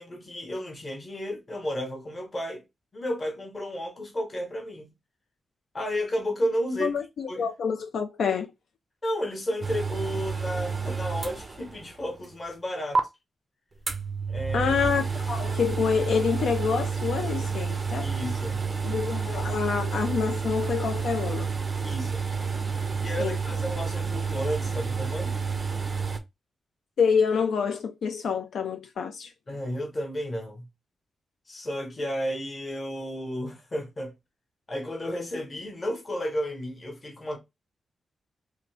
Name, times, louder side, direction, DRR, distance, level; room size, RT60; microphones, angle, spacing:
voice 1, 0.0-2.6 2.9-4.9 5.7-7.0 7.3-7.5 9.0-13.0 14.3-14.7 18.0-18.6 21.8-22.3 23.0-25.4 29.5-30.6 31.5-34.1 34.7-37.4, equal, 25° left, 0.9 m, -32 dB
voice 2, 6.8-8.5 14.5-18.1 18.8-21.5 23.2-23.4 27.0-29.3, left 6 dB, 70° left, 0.4 m, -27 dB
sound 1, 9.6-11.9 12.2-12.3 12.9-13.0 13.9-26.2, right 5 dB, 25° right, 0.4 m, -30 dB
2.7 x 2.6 x 3.2 m
wide cardioid pair, 170°, 0 cm